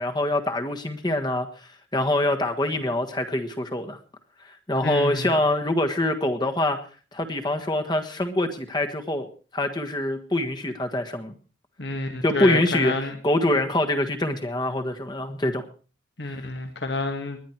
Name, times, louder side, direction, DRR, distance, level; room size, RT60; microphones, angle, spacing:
voice 1, 0.0-1.5 1.9-4.0 4.7-6.8 7.1-9.3 9.5-11.3 12.2-12.9 13.2-15.6, left 1 dB, 25° left, 6 dB, 1.5 m, -24 dB
voice 2, 4.8-5.3 11.8-13.1 16.2-17.4, left 2 dB, 70° left, 5 dB, 2.1 m, -29 dB
20.5 x 10.5 x 4.6 m, 0.38 s
head